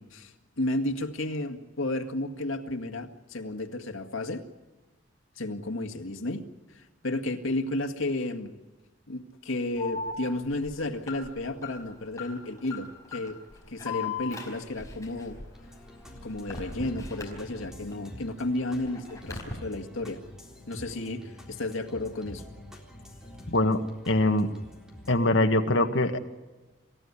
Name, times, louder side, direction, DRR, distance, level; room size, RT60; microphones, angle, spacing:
voice 1, 0.0-4.4 5.4-6.4 6.7-8.5 9.1-13.4 13.7-15.4 16.2-20.2 20.7-22.4, left 2 dB, 85° left, 6 dB, 2.0 m, -32 dB
Alarm, 9.8-17.9 18.3-19.5, left 4 dB, 15° left, 5.0 m, -40 dB
sound 1, 15.5-25.2, left 1 dB, 5° right, 3.8 m, -47 dB
voice 2, 23.5-23.8 24.1-24.5 25.1-26.2, left 2 dB, 70° left, 6 dB, 1.7 m, -23 dB
27.5 x 15.0 x 9.8 m, 1.2 s
head